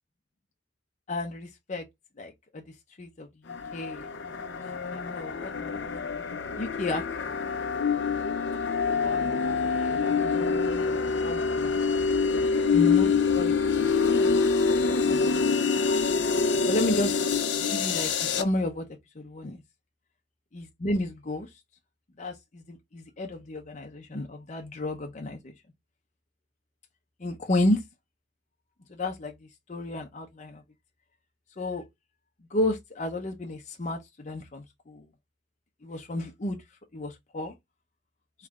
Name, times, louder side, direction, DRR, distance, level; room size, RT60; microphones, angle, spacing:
voice 1, 1.1-1.8 2.2-2.6 3.0-4.1 4.5-4.6 4.9-5.8 6.6-7.0 7.8-8.0 8.9-9.2 9.7-10.2 11.2-11.8 12.7-14.4 14.8-15.3 16.7-17.1 17.6-18.9 19.2-19.6 20.5-21.5 22.2-25.5 27.2-27.8 28.9-29.3 29.7-30.6 31.6-31.9 32.5-35.1 35.8-36.6 36.9-37.5, left 1 dB, 40° left, 0.7 m, -32 dB
sound 1, 3.5-18.4, left 5 dB, 85° left, 0.7 m, -26 dB
3.6 x 3.2 x 3.5 m
head